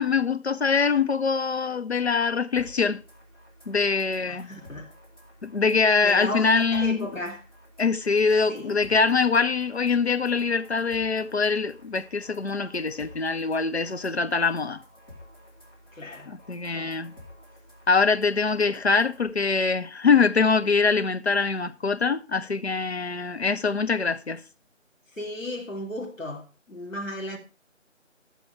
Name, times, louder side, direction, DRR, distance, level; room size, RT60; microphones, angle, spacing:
voice 1, 0.0-3.0 3.7-4.5 5.4-7.0 7.8-14.8 16.3-17.1 17.9-24.4, left 4 dB, 55° left, 0.8 m, -23 dB
sound 1, 2.6-19.3, left 1 dB, 15° left, 2.3 m, -51 dB
voice 2, 4.3-4.9 6.0-7.4 8.5-8.8 15.9-16.3 16.7-17.0 25.1-27.4, left 1 dB, 90° left, 3.1 m, -35 dB
13.0 x 7.0 x 4.6 m
figure-of-eight pair, 170°, 39 cm